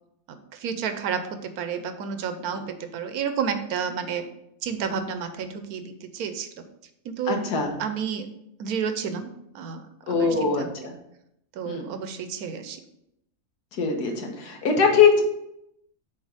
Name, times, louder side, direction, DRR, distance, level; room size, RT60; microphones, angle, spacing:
voice 1, 0.5-4.3 4.6-6.5 7.0-7.4 7.8-8.3 8.6-10.9 11.5-12.8, right 7 dB, 75° right, 8 dB, 1.1 m, -31 dB
voice 2, 7.3-7.7 10.1-10.9 11.7-11.9 13.8-15.2, left 5 dB, 80° left, 2 dB, 1.6 m, -22 dB
7.4 x 3.1 x 4.9 m, 0.80 s
omnidirectional pair, 1.7 m